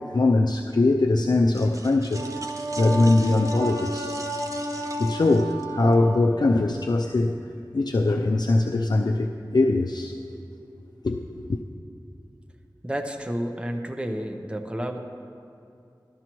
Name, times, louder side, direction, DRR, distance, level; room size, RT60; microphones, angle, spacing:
voice 1, 0.1-2.3 2.8-4.1 5.0-7.4 7.7-10.1 11.0-11.6, left 2 dB, 60° left, 3 dB, 0.4 m, -22 dB
sound 1, 1.5-5.9, right 1 dB, 45° right, 0.8 m, -42 dB
Wind instrument woodwind instrument, 2.1-6.4, right 1 dB, 70° right, 3.0 m, -32 dB
voice 2, 12.8-15.0, equal, 15° right, 4 dB, 0.8 m, -30 dB
14.0 x 12.5 x 3.0 m, 2.5 s
wide cardioid pair, 55°, 8 cm